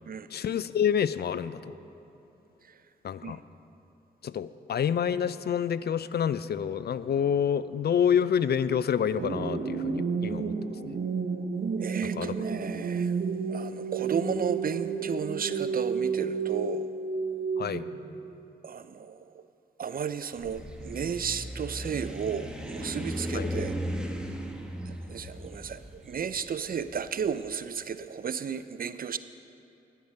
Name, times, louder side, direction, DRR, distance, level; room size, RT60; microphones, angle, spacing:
voice 1, 0.3-1.7 3.0-3.4 4.2-10.5 10.8-11.0 12.0-12.4 17.6-17.8 23.3-23.5, left 8 dB, 55° left, 15 dB, 0.4 m, -28 dB
sound 1, 9.1-18.1, right 5 dB, 65° right, 0.9 m, -31 dB
voice 2, 11.8-13.1 13.5-16.9 18.6-19.2 19.8-23.7 25.1-29.2, right 7 dB, 45° right, 13 dB, 0.4 m, -33 dB
sound 2, 20.3-27.5, equal, 5° right, 1.1 m, -36 dB
10.5 x 8.3 x 5.4 m, 2.9 s
supercardioid pair, 45°, 20 cm